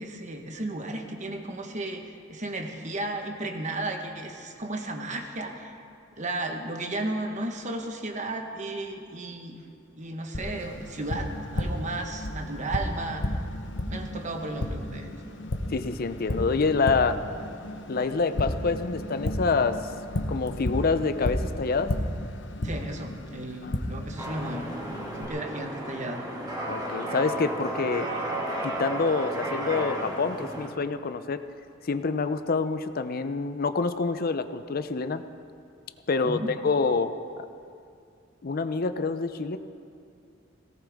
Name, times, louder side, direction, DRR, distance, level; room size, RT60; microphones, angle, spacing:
voice 1, 0.0-2.0 2.3-5.8 6.2-9.6 10.0-13.2 13.9-15.1 22.6-24.7 25.2-26.2 36.2-36.5, right 2 dB, 40° right, 4 dB, 1.2 m, -34 dB
Tap, 10.3-25.3, left 1 dB, 65° left, 1.0 m, -33 dB
voice 2, 15.7-17.2 17.9-19.9 20.3-22.0 23.6-23.8 26.7-28.1 28.6-31.4 31.8-35.2 36.1-37.5 38.4-39.6, left 4 dB, 50° left, 11 dB, 0.6 m, -27 dB
sound 1, 24.2-30.7, right 1 dB, 20° right, 2.0 m, -33 dB
18.0 x 17.5 x 3.6 m, 2.4 s
head